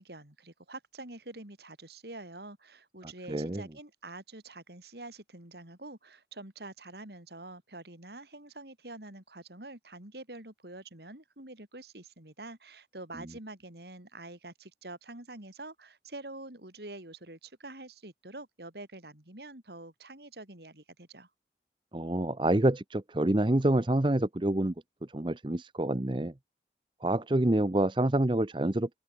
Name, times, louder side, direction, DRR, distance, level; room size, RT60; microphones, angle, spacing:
voice 1, 0.0-21.3, right 2 dB, 65° right, 3.9 m, -46 dB
voice 2, 3.3-3.6 21.9-24.7 25.1-26.3 27.0-28.9, right 1 dB, 25° right, 0.8 m, -27 dB
open air
head